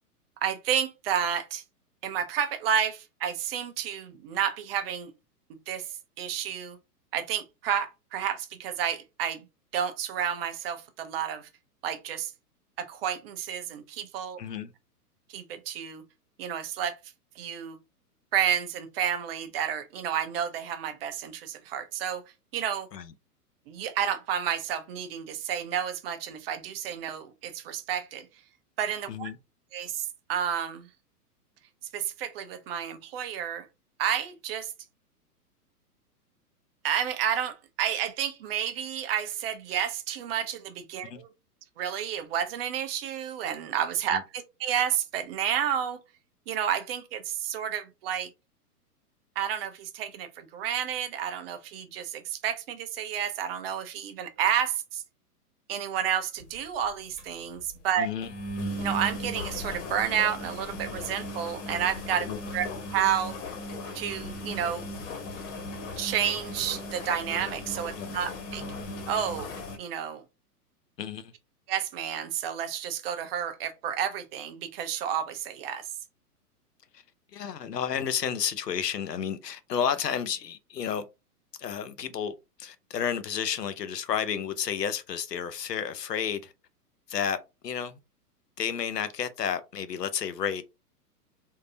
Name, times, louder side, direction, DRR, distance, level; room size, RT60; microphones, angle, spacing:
voice 1, 0.4-1.6 2.0-5.1 5.7-6.8 7.1-9.4 9.7-11.5 11.8-12.3 12.8-14.4 15.3-16.0 16.4-17.0 17.4-17.8 18.3-22.2 22.5-22.9 23.7-28.3 28.8-29.3 29.7-30.9 31.9-33.7 34.0-34.7 36.8-41.3 41.8-46.0 46.5-48.3 49.4-55.0 55.7-58.1 58.8-62.3 62.5-62.7 62.9-63.3 63.9-64.9 66.0-68.6 69.1-70.2 71.7-75.9, right 9 dB, 40° right, 0.6 m, -30 dB
voice 2, 14.4-14.7 22.9-23.1 29.1-29.4 41.0-41.2 44.1-44.2 58.0-58.3 62.3-62.4 68.0-68.1 71.0-71.3 76.9-77.0 77.3-81.0 81.6-86.5 87.1-87.4 87.6-88.0 88.6-90.6, left 8 dB, 85° left, 0.7 m, -31 dB
sound 1, 56.4-56.6 56.8-56.9 57.2-57.3 57.6-57.7 58.2-69.8, left 1 dB, 50° left, 1.4 m, -37 dB
3.6 x 2.7 x 2.6 m
hypercardioid pair, 115°, 47 cm